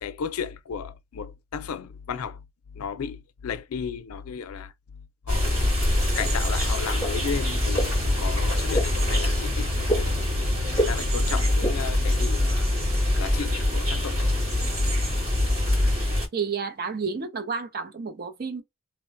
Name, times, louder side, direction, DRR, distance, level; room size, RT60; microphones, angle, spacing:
voice 1, 0.0-2.4 2.7-4.7 5.3-5.6 6.1-10.1 10.7-12.7 13.2-14.3, left 6 dB, 80° left, 0.4 m, -34 dB
sound 1, 5.3-16.3, left 1 dB, 85° right, 1.8 m, -24 dB
sound 2, 5.7-14.0, equal, 15° left, 0.7 m, -34 dB
voice 2, 16.3-18.6, right 5 dB, 45° right, 0.5 m, -30 dB
3.0 x 2.2 x 2.6 m
head